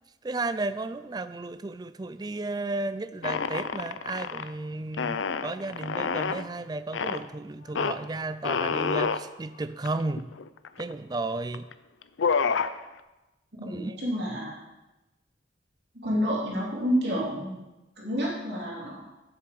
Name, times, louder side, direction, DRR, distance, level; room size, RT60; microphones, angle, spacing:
voice 1, 0.2-10.3 10.8-11.7 13.6-14.0, right 2 dB, 20° right, 13 dB, 0.3 m, -33 dB
sound 1, 3.2-4.5 4.9-6.4 6.9-7.2 7.7-7.9 8.4-9.2 9.8-9.9 10.2-10.9 11.5-11.7 12.0-12.7, left 5 dB, 80° left, 0.5 m, -28 dB
voice 2, 13.6-14.6 15.9-17.6 18.0-19.1, equal, 60° right, -4 dB, 3.0 m, -29 dB
7.5 x 7.0 x 6.8 m, 1.0 s
head